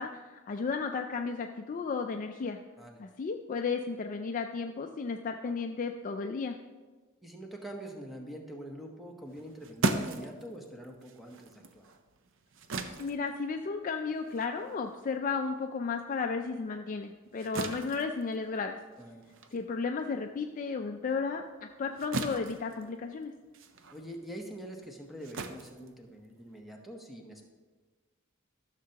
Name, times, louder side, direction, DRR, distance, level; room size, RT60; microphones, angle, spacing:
voice 1, 0.0-2.6 3.0-6.6 13.0-18.7 19.5-23.3, left 4 dB, 40° left, 4 dB, 0.3 m, -34 dB
voice 2, 7.2-11.8 19.0-19.2 23.9-27.5, right 1 dB, ahead, 1 dB, 0.9 m, -45 dB
sound 1, 9.3-16.1 16.4-26.6, right 2 dB, 60° right, 0.6 m, -39 dB
13.5 x 6.6 x 2.9 m, 1.4 s
head